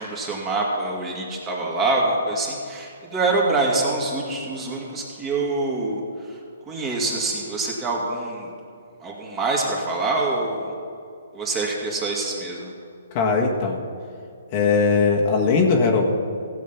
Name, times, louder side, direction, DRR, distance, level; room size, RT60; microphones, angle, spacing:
voice 1, 0.0-6.0 6.7-8.5 9.0-10.7 11.3-12.7, right 2 dB, 20° right, -2 dB, 2.5 m, -25 dB
voice 2, 13.1-13.8 14.5-16.1, left 4 dB, 35° left, 0 dB, 1.5 m, -19 dB
16.0 x 7.6 x 5.8 m, 2.5 s
hypercardioid pair, 140°, 0 cm